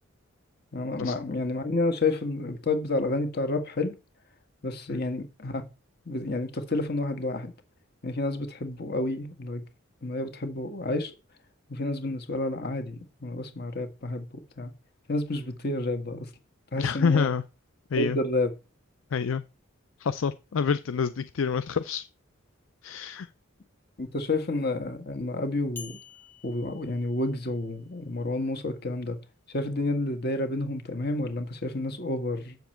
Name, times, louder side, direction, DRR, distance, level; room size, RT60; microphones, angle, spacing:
voice 1, 0.7-3.9 4.6-5.6 6.0-7.5 8.0-9.6 10.0-11.1 11.7-14.3 14.6-14.7 15.1-16.3 16.7-17.3 17.9-18.5 24.0-26.0 26.4-29.2 29.5-32.6, left 2 dB, 50° left, 1.7 m, -30 dB
voice 2, 16.8-17.4 17.9-18.2 19.1-19.4 20.0-22.0 22.8-23.3, left 6 dB, 70° left, 0.5 m, -27 dB
sound 1, 25.8-27.8, left 6 dB, 10° left, 0.8 m, -48 dB
7.9 x 7.2 x 4.4 m
head